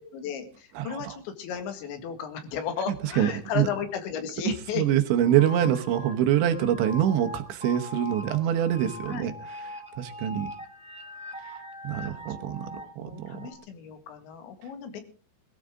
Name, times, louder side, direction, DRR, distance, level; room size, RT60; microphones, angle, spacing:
voice 1, 0.1-4.9 9.1-9.3 12.0-12.2 12.7-15.0, left 8 dB, 80° left, 7 dB, 4.2 m, -35 dB
voice 2, 0.8-1.1 3.2-3.7 4.8-9.3 9.6-10.5 11.4-11.5 11.8-12.7 13.0-13.4, right 10 dB, 80° right, 7 dB, 3.3 m, -25 dB
sound 1, 5.1-13.5, left 1 dB, 5° right, 0.4 m, -42 dB
21.5 x 13.5 x 3.7 m, 0.38 s
omnidirectional pair, 5.3 m